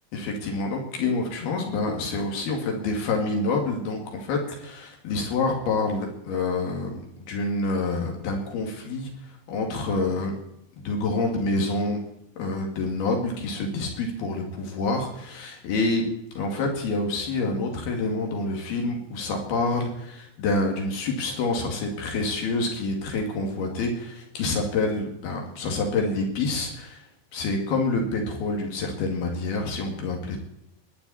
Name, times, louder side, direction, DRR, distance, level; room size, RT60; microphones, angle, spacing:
voice 1, 0.1-7.0 7.3-10.3 10.8-12.0 12.4-16.0 16.4-27.0 27.3-30.4, left 3 dB, 85° left, 1 dB, 4.3 m, -27 dB
22.0 x 10.5 x 4.2 m, 0.79 s
omnidirectional pair, 4.3 m